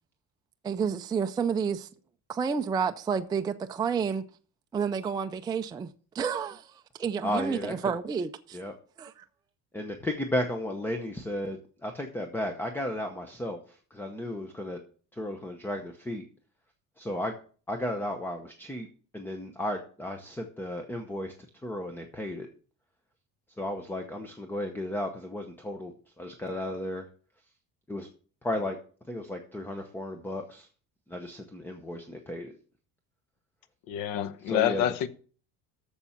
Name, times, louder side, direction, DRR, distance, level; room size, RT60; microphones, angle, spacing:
voice 1, 0.6-1.9 2.3-4.2 4.7-5.9 6.1-8.6 9.0-9.1, right 6 dB, 15° right, 0.3 m, -30 dB
voice 2, 7.2-7.9 8.5-8.8 9.7-14.8 15.1-16.2 17.0-17.3 17.7-18.9 19.1-21.3 21.6-22.5 23.6-27.1 27.9-28.1 28.4-28.8 29.1-30.7 31.1-32.6 34.4-34.8, left 1 dB, 5° left, 0.8 m, -34 dB
voice 3, 33.9-35.1, left 11 dB, 75° left, 0.9 m, -27 dB
7.1 x 7.0 x 7.2 m
cardioid pair, 155°, 34 cm